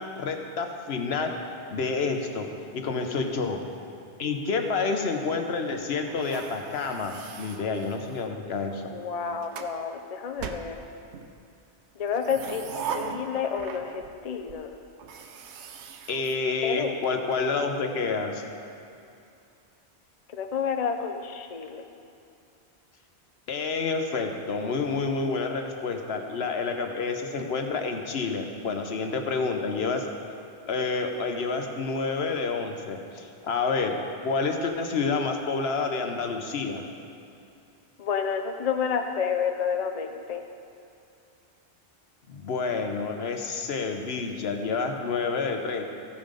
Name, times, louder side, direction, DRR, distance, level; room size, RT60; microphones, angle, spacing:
voice 1, 0.0-1.3 1.7-2.5 2.7-3.6 4.2-8.8 16.1-18.4 23.5-30.1 30.7-34.0 34.2-36.9 42.3-45.9, left 4 dB, 70° left, 4 dB, 1.1 m, -29 dB
sound 1, 6.1-8.4 9.1-9.8 10.4-11.3 12.0-14.2 14.5-14.6 15.0-17.1, right 6 dB, 85° right, 1.0 m, -39 dB
voice 2, 8.9-10.8 12.0-14.7 16.6-16.9 20.3-21.8 38.0-40.4, left 6 dB, 45° left, 5 dB, 0.6 m, -30 dB
14.5 x 5.6 x 5.1 m, 2.6 s
omnidirectional pair, 1.1 m